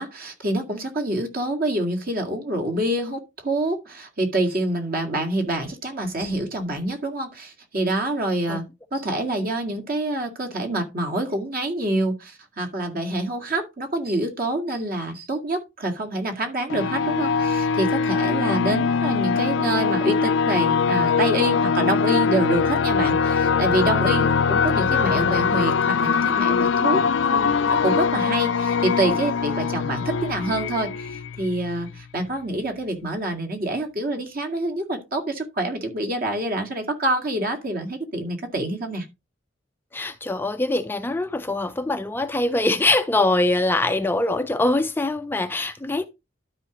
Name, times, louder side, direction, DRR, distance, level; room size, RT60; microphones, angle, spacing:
voice 1, 0.0-8.6 8.9-39.1, right 1 dB, 50° right, 2.0 m, -26 dB
sound 1, 16.7-32.0, left 5 dB, 70° left, 0.5 m, -22 dB
voice 2, 39.9-46.1, left 2 dB, 10° left, 0.4 m, -23 dB
12.5 x 4.9 x 3.0 m
head